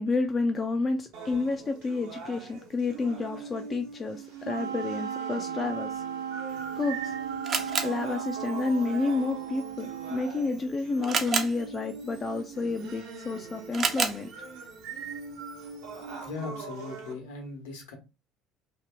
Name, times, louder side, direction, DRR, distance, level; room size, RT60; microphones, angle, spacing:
voice 1, 0.0-6.0 6.8-7.1 7.8-14.3, left 3 dB, 30° left, 0.5 m, -30 dB
sound 1, 1.1-17.1, right 4 dB, 60° right, 0.9 m, -42 dB
Wind instrument woodwind instrument, 4.4-10.5, right 9 dB, 90° right, 0.7 m, -36 dB
Camera, 6.5-16.4, right 5 dB, 40° right, 0.6 m, -36 dB
voice 2, 16.0-18.0, left 4 dB, 70° left, 1.1 m, -39 dB
2.8 x 2.8 x 3.3 m
figure-of-eight pair, 60°, 0 cm